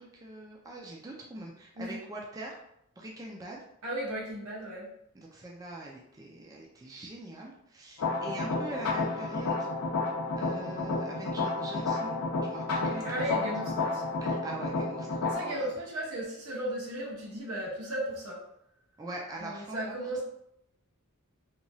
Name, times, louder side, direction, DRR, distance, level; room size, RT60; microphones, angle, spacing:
voice 1, 0.0-2.6 3.0-3.6 5.1-9.7 10.4-13.0 13.4-13.5 14.2-15.7 19.0-19.9, right 2 dB, 15° right, -2 dB, 0.4 m, -43 dB
voice 2, 3.8-4.9 13.0-14.1 15.2-18.5 19.4-20.2, equal, 90° right, -5 dB, 1.0 m, -35 dB
sound 1, 8.0-15.3, left 3 dB, 70° left, 0.6 m, -31 dB
2.9 x 2.3 x 2.6 m, 0.77 s
head